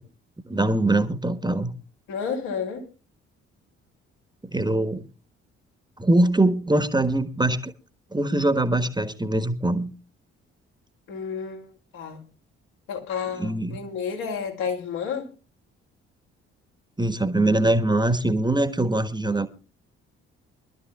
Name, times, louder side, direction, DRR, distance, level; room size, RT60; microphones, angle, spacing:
voice 1, 0.5-1.7 4.5-5.0 6.0-7.7 8.1-9.9 13.4-13.8 17.0-19.5, right 1 dB, 10° right, 1.4 m, -22 dB
voice 2, 2.1-2.8 11.1-11.7 11.9-12.2 12.9-15.3, left 6 dB, 70° left, 3.2 m, -31 dB
25.0 x 12.5 x 2.4 m
figure-of-eight pair, 40°, 35 cm